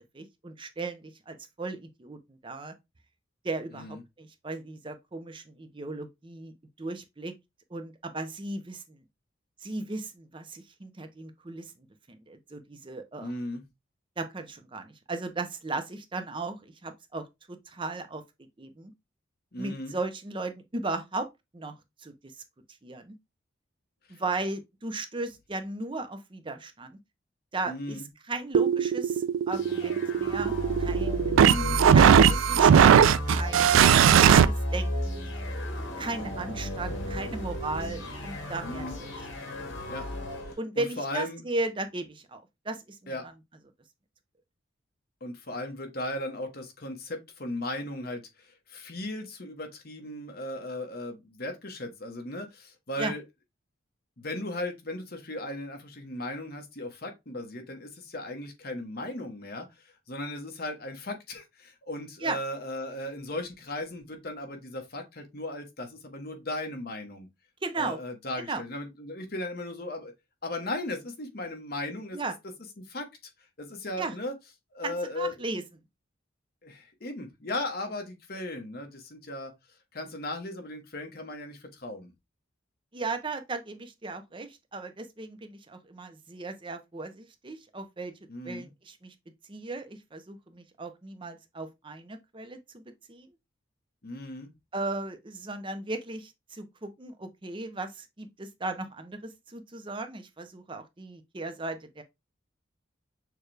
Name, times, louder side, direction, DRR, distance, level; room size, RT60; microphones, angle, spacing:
voice 1, 0.1-2.8 3.4-6.5 6.8-7.3 7.7-9.0 9.6-11.7 12.1-13.3 14.2-18.2 18.6-18.9 19.6-21.3 21.5-21.7 22.0-22.3 22.8-23.1 24.1-27.0 27.5-28.0 28.3-31.3 31.9-32.9 33.3-33.9 34.1-35.4 36.0-39.1 40.6-43.3 53.0-53.1 62.2-62.4 67.6-68.0 68.4-68.6 72.1-72.4 74.0-74.1 74.8-75.6 82.9-88.1 88.4-89.1 89.5-93.3 94.7-102.0, right 3 dB, 25° right, 0.6 m, -36 dB
voice 2, 13.2-13.6 19.5-19.9 24.1-24.2 27.7-28.1 31.3-31.8 38.6-39.0 39.9-41.4 43.1-43.2 45.2-53.2 54.2-67.3 67.7-70.1 70.4-72.3 72.8-73.1 73.6-74.3 74.7-75.3 76.6-79.5 79.9-82.1 88.3-88.7 94.0-94.5, left 1 dB, 50° left, 1.1 m, -37 dB
sound 1, 28.5-34.5, right 8 dB, 90° right, 0.3 m, -19 dB
sound 2, 29.5-40.5, left 1 dB, 80° left, 1.4 m, -33 dB
6.5 x 2.3 x 3.3 m
head